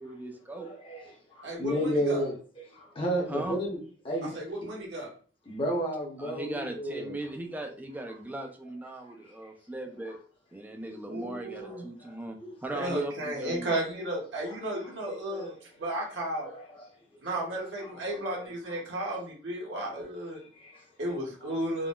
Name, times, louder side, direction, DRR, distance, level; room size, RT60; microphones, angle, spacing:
voice 1, 0.0-0.7 3.3-3.6 6.2-10.2 10.5-13.8, right 1 dB, 10° right, 0.4 m, -38 dB
voice 2, 0.5-3.8 4.0-4.5 5.5-7.1 9.0-9.1 11.6-12.5 14.8-14.9 15.3-15.5 16.4-16.9 17.3-17.4 17.8-18.4 19.7-19.9 20.5-20.8 21.4-21.5, equal, 30° left, 0.7 m, -33 dB
voice 3, 1.4-2.2 4.3-5.1 11.1-11.8 12.7-15.5 15.8-16.5 17.2-20.4 21.0-21.9, right 1 dB, 80° right, 1.1 m, -34 dB
3.8 x 2.0 x 2.2 m
head